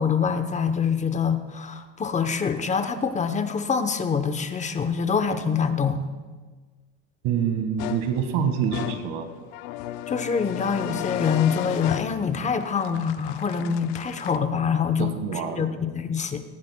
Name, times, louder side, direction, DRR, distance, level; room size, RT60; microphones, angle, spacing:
voice 1, 0.0-6.1 10.1-16.4, left 6 dB, 20° left, 9 dB, 0.8 m, -25 dB
voice 2, 7.2-9.3 15.0-15.7, right 7 dB, 70° right, 7 dB, 1.7 m, -26 dB
sound 1, 7.8-14.4, left 14 dB, 80° left, 0.6 m, -34 dB
18.0 x 15.0 x 2.2 m, 1.4 s
cardioid pair, 130°, 33 cm